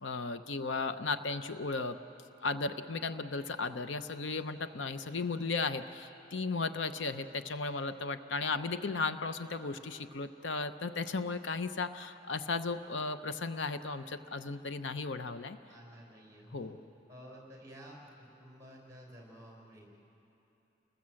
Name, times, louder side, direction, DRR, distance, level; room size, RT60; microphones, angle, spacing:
voice 1, 0.0-2.0 2.4-15.6 16.5-16.8, left 4 dB, 80° left, 10 dB, 0.8 m, -35 dB
voice 2, 15.7-16.8 17.1-20.0, equal, 15° right, -1 dB, 4.9 m, -52 dB
29.5 x 20.0 x 7.7 m, 2.9 s
head